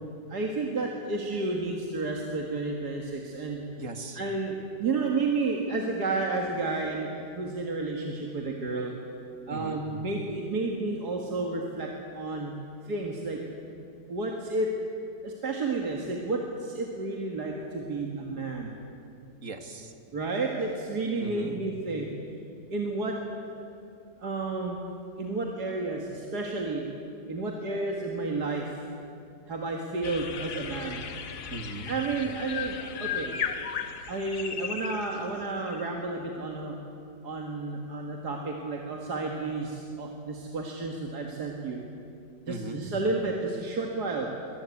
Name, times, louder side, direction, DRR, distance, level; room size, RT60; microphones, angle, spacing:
voice 1, 0.3-3.6 4.2-8.9 9.5-12.5 12.8-13.4 14.1-14.7 15.2-18.8 20.1-22.1 22.7-23.2 23.5-23.6 24.2-24.8 25.2-26.9 27.3-28.8 29.5-31.1 31.9-33.3 34.1-36.8 37.2-41.8 42.5-44.3, right 3 dB, 65° right, 0 dB, 2.4 m, -31 dB
voice 2, 3.8-4.2 9.5-9.8 19.4-19.9 21.2-21.6 31.5-32.0 42.5-42.9, right 3 dB, 50° right, 6 dB, 1.9 m, -38 dB
sound 1, 30.0-35.3 35.7-35.9, left 7 dB, 65° left, 1.7 m, -36 dB
23.5 x 19.0 x 8.5 m, 2.6 s
omnidirectional pair, 1.9 m